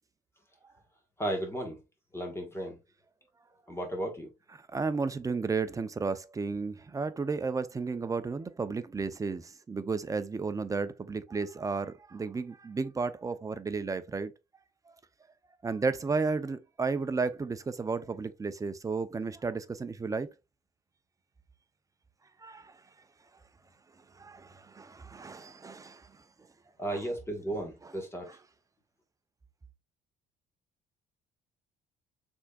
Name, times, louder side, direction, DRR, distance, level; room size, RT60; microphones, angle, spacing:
voice 1, 1.2-1.8 2.1-2.8 3.7-4.3 26.8-28.3, right 1 dB, 15° left, 1.3 m, -34 dB
voice 2, 4.6-14.3 14.9-15.0 15.6-20.3 22.4-22.8 24.0-26.2 26.9-27.0 27.8-27.9 28.3-28.4, right 4 dB, 20° right, 0.5 m, -33 dB
6.1 x 3.6 x 2.3 m
cardioid pair, 110°, 17 cm